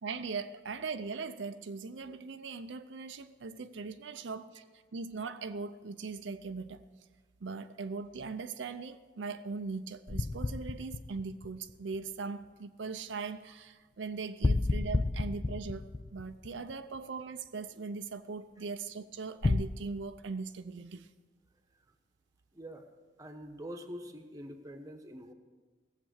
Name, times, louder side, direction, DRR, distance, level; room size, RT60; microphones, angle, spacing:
voice 1, 0.0-4.6 4.9-6.8 7.4-21.1, right 4 dB, 85° right, 9 dB, 0.5 m, -40 dB
sound 1, 10.1-12.0 14.4-17.0 19.4-19.6, left 2 dB, 20° left, 0.3 m, -31 dB
voice 2, 22.5-22.9 23.2-25.3, equal, 20° right, 5 dB, 1.1 m, -45 dB
17.5 x 7.5 x 6.4 m, 1.4 s
head